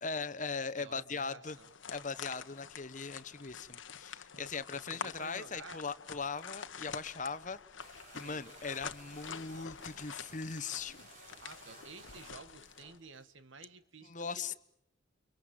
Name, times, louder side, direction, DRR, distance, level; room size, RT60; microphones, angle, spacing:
voice 1, 0.0-1.6 1.9-7.6 7.8-11.0 14.0-14.5, left 5 dB, 40° left, 1.0 m, -40 dB
voice 2, 0.8-1.7 4.3-5.8 8.2-8.6 11.4-14.6, right 4 dB, 80° right, 1.7 m, -52 dB
sound 1, 1.4-13.0, left 6 dB, 75° left, 1.3 m, -47 dB
sound 2, 7.8-13.3, right 3 dB, 40° right, 4.5 m, -57 dB
30.0 x 24.5 x 7.8 m
head